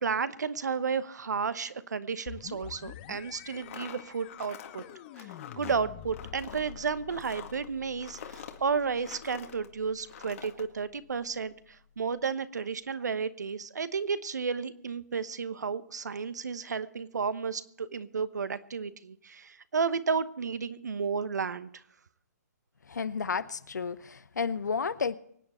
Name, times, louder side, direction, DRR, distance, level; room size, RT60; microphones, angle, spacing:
voice 1, 0.0-4.8 5.2-5.3 5.6-11.5 12.0-21.8, right 5 dB, 75° right, 14 dB, 1.0 m, -32 dB
sound 1, 2.3-11.8, left 10 dB, 30° left, 0.9 m, -49 dB
sound 2, 3.5-9.7 10.0-10.6, left 8 dB, 50° left, 1.9 m, -46 dB
voice 2, 22.9-25.1, left 5 dB, 75° left, 17 dB, 0.8 m, -32 dB
24.5 x 8.9 x 4.3 m, 0.67 s
hypercardioid pair, 140°, 9 cm